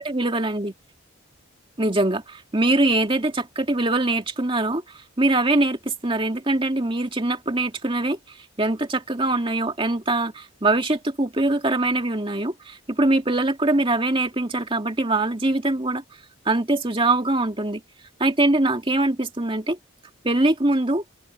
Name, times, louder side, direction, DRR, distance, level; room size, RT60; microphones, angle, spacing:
voice 1, 0.1-0.7 1.8-16.0 16.5-17.8 18.2-19.8 20.2-21.0, right 2 dB, 25° right, 2.2 m, -23 dB
open air
head